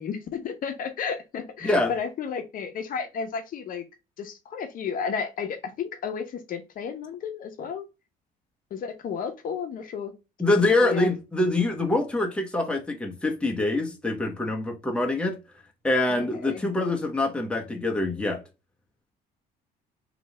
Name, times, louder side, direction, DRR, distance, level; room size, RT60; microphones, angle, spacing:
voice 1, 0.0-3.8 4.2-7.9 8.7-10.1 10.8-11.1 16.1-16.6, left 6 dB, 55° left, 0.8 m, -32 dB
voice 2, 1.6-1.9 10.4-15.4 15.8-18.4, left 2 dB, 5° left, 1.0 m, -25 dB
3.2 x 2.9 x 4.1 m
cardioid pair, 110°, 17 cm